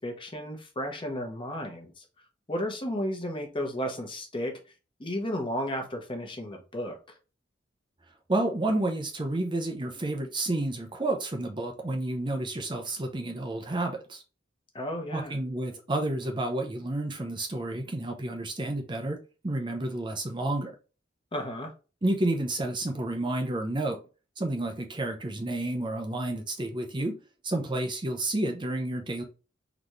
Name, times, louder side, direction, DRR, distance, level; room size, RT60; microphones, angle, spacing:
voice 1, 0.0-2.0 2.5-4.5 5.0-7.0 14.7-15.3 21.3-21.7, equal, 25° left, 1.1 m, -33 dB
voice 2, 8.3-14.2 15.1-20.8 22.0-24.0 24.4-27.2 27.4-29.2, right 2 dB, 25° right, 0.6 m, -30 dB
4.0 x 3.4 x 3.1 m
head